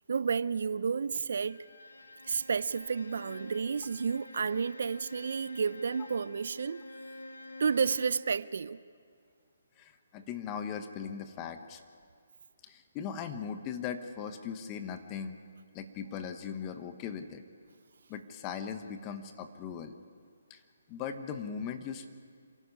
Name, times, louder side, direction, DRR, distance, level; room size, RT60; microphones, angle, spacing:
voice 1, 0.1-1.6 2.3-6.8 7.6-8.8, right 5 dB, 60° right, 0.6 m, -31 dB
Bowed string instrument, 1.5-8.3, left 1 dB, 90° left, 2.0 m, -48 dB
voice 2, 9.8-11.8 12.6-15.4 15.7-17.4 18.1-19.9 20.5-20.6 20.9-22.1, left 7 dB, 25° left, 1.1 m, -39 dB
27.0 x 11.5 x 9.8 m
figure-of-eight pair, 145°, 0 cm